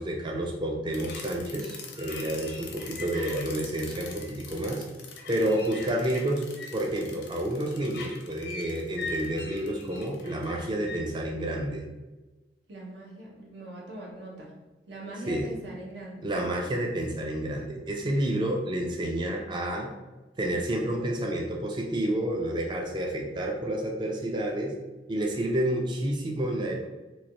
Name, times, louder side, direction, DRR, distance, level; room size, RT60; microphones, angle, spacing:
voice 1, 0.0-4.8 5.3-6.4 6.7-11.8 15.3-15.5 16.2-19.9 20.4-24.7 25.1-26.9, right 1 dB, 25° right, 0 dB, 0.3 m, -29 dB
sound 1, 0.9-11.0, left 3 dB, 70° left, 0.6 m, -41 dB
voice 2, 5.4-5.9 12.7-14.5 14.9-16.3, right 1 dB, 85° right, -3 dB, 0.9 m, -41 dB
3.1 x 2.4 x 2.7 m, 1.1 s
head